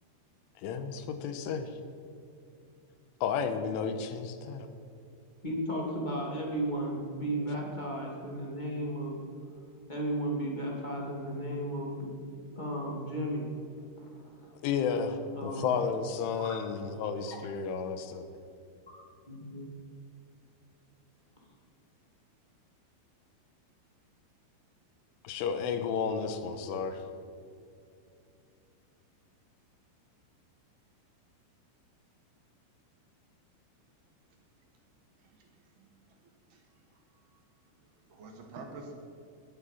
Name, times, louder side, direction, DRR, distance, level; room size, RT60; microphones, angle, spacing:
voice 1, 0.6-1.7 3.2-4.7 14.6-18.3 25.3-27.0, left 6 dB, 85° left, 3.6 m, -32 dB
voice 2, 5.4-9.2 9.9-13.5 14.0-14.5 15.3-15.8 17.3-17.4 19.3-19.7, right 1 dB, 15° left, 1.9 m, -35 dB
voice 3, 35.2-35.9 36.5-37.2 37.8-38.9, right 3 dB, 65° right, 3.3 m, -49 dB
20.5 x 12.0 x 5.7 m
omnidirectional pair, 5.5 m